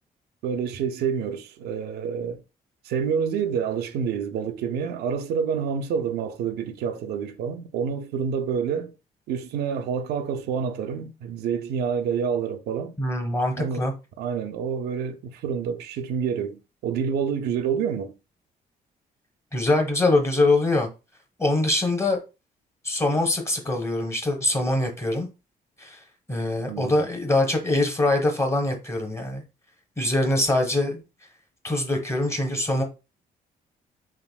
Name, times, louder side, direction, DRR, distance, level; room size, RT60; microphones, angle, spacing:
voice 1, 0.4-2.4 2.8-8.9 9.3-12.9 13.5-13.9 14.2-18.1 26.7-27.0, right 7 dB, 80° right, 0.4 m, -28 dB
voice 2, 13.0-13.9 19.5-20.9 21.4-22.2 22.8-25.3 25.8-26.0 26.3-29.4 30.0-31.0 31.6-32.8, left 2 dB, 15° left, 0.9 m, -23 dB
3.5 x 2.5 x 2.3 m
cardioid pair, 85°, 16 cm